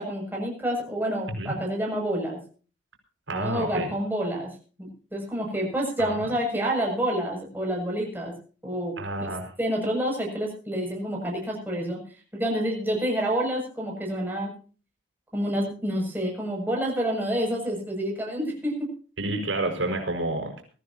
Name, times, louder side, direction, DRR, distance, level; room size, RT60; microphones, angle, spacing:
voice 1, 0.0-2.4 3.3-4.5 4.8-8.3 8.6-9.0 9.6-12.0 12.3-14.5 15.3-18.9, equal, 10° right, -1 dB, 7.3 m, -28 dB
voice 2, 3.3-3.9 6.0-6.3 9.0-9.5 19.2-20.6, right 2 dB, 90° right, 3 dB, 5.5 m, -29 dB
23.0 x 14.0 x 2.9 m, 0.39 s
head